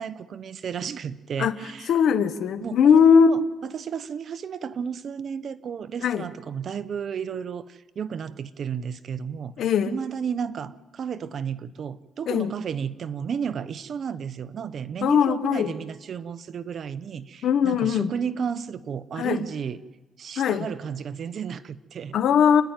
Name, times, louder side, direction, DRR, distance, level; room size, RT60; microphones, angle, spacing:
voice 1, 0.0-2.0 2.6-9.6 9.9-19.8 20.2-22.2, right 7 dB, 55° right, 15 dB, 0.9 m, -33 dB
voice 2, 1.9-3.4 6.0-6.2 9.6-9.9 12.3-12.5 15.0-15.7 17.4-18.1 19.2-19.4 20.4-20.7 22.1-22.6, left 7 dB, 70° left, 12 dB, 1.2 m, -20 dB
29.0 x 10.5 x 9.1 m, 1.2 s
cardioid pair, 90°, 0 cm